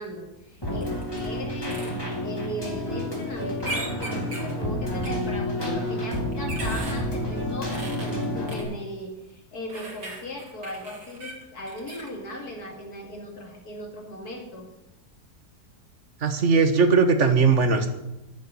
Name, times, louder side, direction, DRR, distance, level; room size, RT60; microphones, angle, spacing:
voice 1, 0.0-1.9 2.2-14.7, left 1 dB, 60° left, 2 dB, 2.7 m, -38 dB
Keyboard (musical), 0.6-8.6, left 1 dB, 15° left, 3.0 m, -29 dB
sound 1, 0.8-1.2 1.7-1.9 3.6-4.5 5.0-5.1 6.1-7.0 7.7-8.6 9.7-12.1, right 2 dB, 85° right, 3.0 m, -37 dB
voice 2, 16.2-17.9, right 4 dB, 45° right, 9 dB, 1.5 m, -19 dB
13.0 x 7.2 x 9.8 m, 0.95 s
omnidirectional pair, 1.8 m